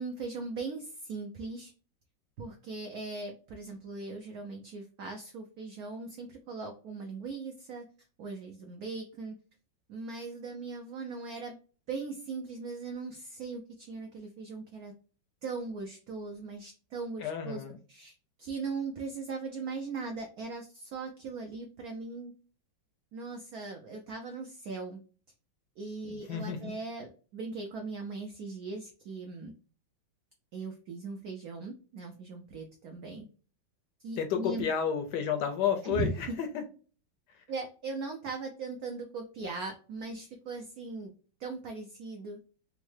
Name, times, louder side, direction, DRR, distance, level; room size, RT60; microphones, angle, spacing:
voice 1, 0.0-1.7 2.4-7.8 8.2-9.3 9.9-11.6 11.9-14.9 15.4-17.6 17.9-22.3 23.1-25.0 25.8-29.5 30.5-33.2 34.0-34.7 35.8-36.3 37.5-41.1 41.4-42.4, right 3 dB, 80° right, 0.8 m, -39 dB
voice 2, 17.2-17.8 26.1-26.7 34.2-36.6, left 7 dB, 70° left, 1.1 m, -31 dB
3.6 x 2.1 x 3.1 m
omnidirectional pair, 2.1 m